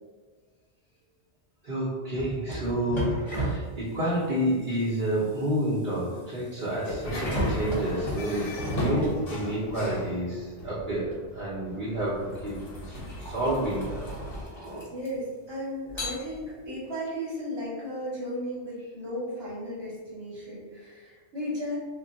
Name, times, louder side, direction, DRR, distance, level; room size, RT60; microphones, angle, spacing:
voice 1, 1.6-12.5 12.8-14.0, right 1 dB, 50° right, -10 dB, 0.9 m, -29 dB
sound 1, 2.2-9.8 11.1-11.3 12.0-15.4 15.9-16.8, right 1 dB, 25° left, 0.8 m, -35 dB
sound 2, 7.0-14.4, left 1 dB, 60° left, 0.8 m, -37 dB
voice 2, 14.9-21.8, equal, 25° right, -9 dB, 1.1 m, -35 dB
2.3 x 2.2 x 3.8 m, 1.4 s
omnidirectional pair, 1.2 m